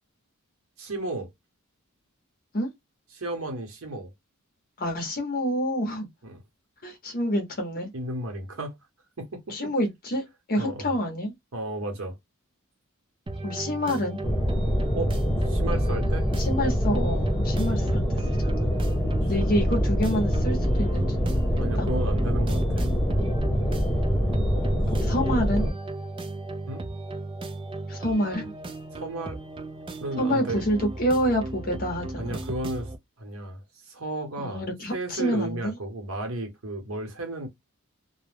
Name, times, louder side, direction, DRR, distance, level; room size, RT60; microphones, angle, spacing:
voice 1, 0.8-1.3 3.1-4.1 6.2-6.4 7.9-8.7 9.2-9.7 10.6-10.9 11.5-12.2 14.9-15.1 15.4-16.3 19.2-19.3 21.6-22.9 25.0-25.5 26.7-26.8 28.9-29.4 30.0-30.6 32.2-32.9 33.2-37.5, right 2 dB, 75° right, 1.0 m, -34 dB
voice 2, 4.8-6.1 6.8-7.9 9.5-10.2 10.5-11.3 13.4-14.2 16.4-18.0 18.4-18.7 19.3-21.9 23.7-24.2 24.9-25.7 27.9-28.5 30.2-32.4 34.4-35.8, equal, 45° left, 0.8 m, -28 dB
sound 1, 13.3-33.0, right 2 dB, 25° right, 0.4 m, -36 dB
sound 2, 14.2-25.7, equal, 10° left, 0.9 m, -25 dB
2.3 x 2.1 x 3.2 m
head